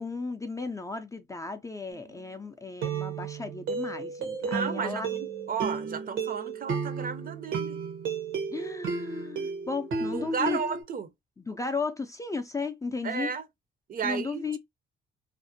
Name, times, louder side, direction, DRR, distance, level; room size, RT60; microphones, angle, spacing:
voice 1, 0.0-5.1 8.5-10.6 11.4-13.3 14.0-14.6, left 4 dB, 15° left, 0.4 m, -34 dB
sound 1, 1.9-2.2 2.8-10.8, right 5 dB, 80° right, 0.9 m, -33 dB
voice 2, 4.4-7.8 10.1-11.1 13.0-13.4 13.9-14.6, right 6 dB, 45° right, 0.5 m, -33 dB
2.4 x 2.1 x 2.6 m
cardioid pair, 90°, 20 cm